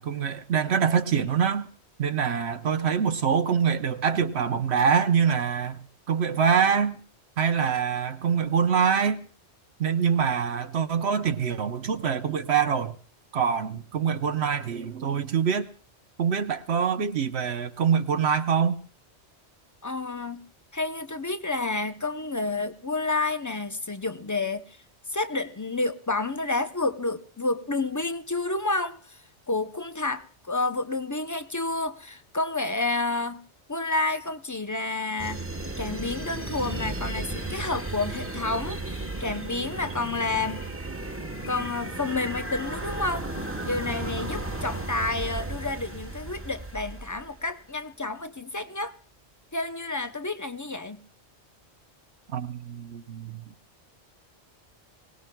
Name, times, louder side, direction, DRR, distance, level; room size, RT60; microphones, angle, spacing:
voice 1, 0.0-1.7 2.0-5.8 6.1-7.0 7.4-9.2 9.8-13.0 13.3-15.7 16.2-18.8 52.3-53.4, right 7 dB, 70° right, 1.1 m, -25 dB
voice 2, 19.8-20.4 20.7-24.8 25.1-29.2 29.5-33.4 33.7-35.4 35.8-40.6 41.5-43.3 43.7-49.0 49.5-51.0, left 3 dB, 20° left, 0.5 m, -30 dB
sound 1, 35.2-47.5, right 2 dB, 10° right, 1.0 m, -34 dB
24.0 x 18.5 x 2.2 m
omnidirectional pair, 1.2 m